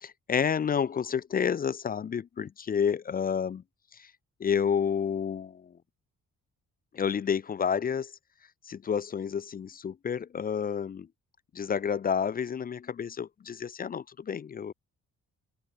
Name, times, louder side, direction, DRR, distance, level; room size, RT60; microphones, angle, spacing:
voice 1, 0.0-3.6 3.9-4.1 4.4-5.8 6.9-8.1 8.6-11.1 11.5-14.7, left 7 dB, 30° left, 0.3 m, -30 dB
open air
wide cardioid pair, 180°, 33 cm